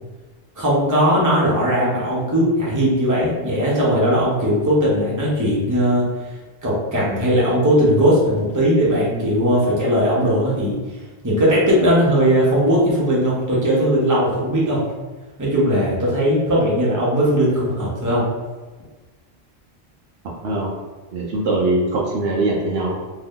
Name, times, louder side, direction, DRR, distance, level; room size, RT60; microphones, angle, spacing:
voice 1, 0.6-6.1 6.6-10.8 11.2-14.8 15.4-18.3, equal, 20° right, -6 dB, 0.7 m, -18 dB
voice 2, 21.1-23.0, right 2 dB, 70° right, -3 dB, 0.8 m, -21 dB
2.7 x 2.2 x 3.5 m, 1.3 s
omnidirectional pair, 1.1 m